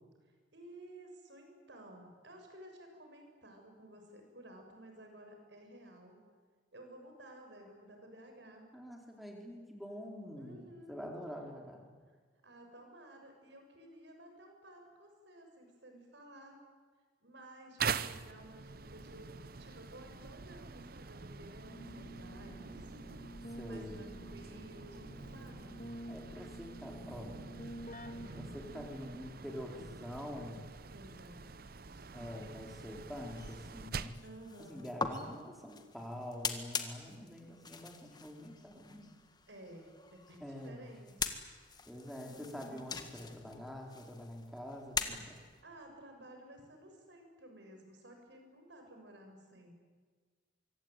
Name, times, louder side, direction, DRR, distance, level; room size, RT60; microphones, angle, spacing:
voice 1, 0.5-6.2 6.7-8.7 10.4-11.1 12.4-16.6 17.2-19.3 19.6-22.9 23.7-25.9 28.7-29.3 30.9-32.5 34.2-35.0 39.5-41.4 42.2-42.9 45.6-49.7, right 1 dB, 65° right, 3 dB, 6.9 m, -54 dB
voice 2, 8.7-11.9 23.5-24.3 26.1-27.4 28.3-30.7 32.1-34.2 34.6-39.1 40.4-40.9 41.9-45.4, left 1 dB, ahead, 0 dB, 4.2 m, -46 dB
sound 1, 17.8-34.3, right 5 dB, 50° right, 0.8 m, -45 dB
Keyboard (musical), 21.7-29.2, equal, 40° left, 2.0 m, -49 dB
sound 2, 33.3-45.6, left 5 dB, 20° left, 1.7 m, -43 dB
25.0 x 24.5 x 9.2 m, 1.5 s
head